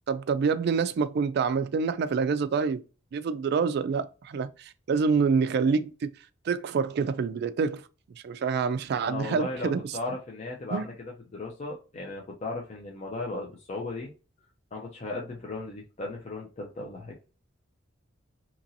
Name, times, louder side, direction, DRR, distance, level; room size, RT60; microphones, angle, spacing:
voice 1, 0.1-2.8 3.1-4.5 4.9-6.1 6.5-7.8 8.2-9.8 10.7-10.9, right 5 dB, 55° right, 0.3 m, -26 dB
voice 2, 9.0-14.1 14.7-17.2, left 2 dB, 35° left, 0.5 m, -36 dB
2.9 x 2.6 x 2.6 m
head